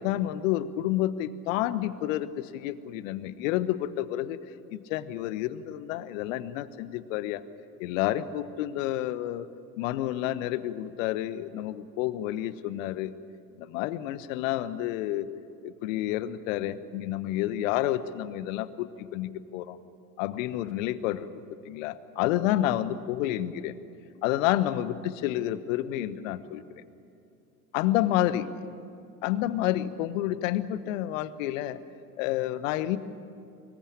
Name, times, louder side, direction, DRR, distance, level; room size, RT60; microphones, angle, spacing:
voice 1, 0.0-4.4 4.7-7.4 7.8-9.4 9.8-13.1 13.6-15.3 15.6-19.8 20.2-21.3 21.6-23.7 24.2-26.8 27.7-28.5 29.2-31.8 32.2-33.0, left 13 dB, 55° left, 15 dB, 1.3 m, -29 dB
25.0 x 21.5 x 8.7 m, 2.6 s
figure-of-eight pair, 75°, 46 cm